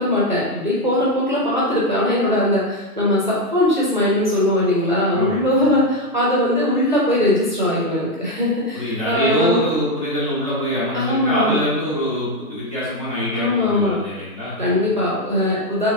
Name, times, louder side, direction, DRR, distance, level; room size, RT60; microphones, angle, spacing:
voice 1, 0.0-9.5 10.9-11.6 13.3-14.0 14.6-15.9, left 1 dB, 30° right, -6 dB, 0.7 m, -20 dB
voice 2, 5.1-5.7 8.7-14.8, equal, 20° left, -9 dB, 0.8 m, -24 dB
3.4 x 3.2 x 3.5 m, 1.1 s
figure-of-eight pair, 165°, 46 cm